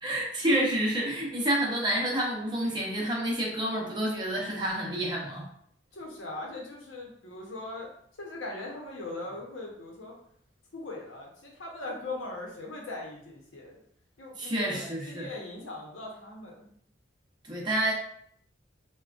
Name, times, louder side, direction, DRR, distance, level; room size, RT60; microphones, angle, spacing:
voice 1, 0.0-5.5 14.4-15.3 17.4-17.9, right 1 dB, 25° right, -3 dB, 0.7 m, -29 dB
voice 2, 5.9-7.9 8.2-10.1 10.7-13.8 14.2-16.7, left 2 dB, 80° left, -1 dB, 0.8 m, -40 dB
3.6 x 2.2 x 2.4 m, 0.65 s
head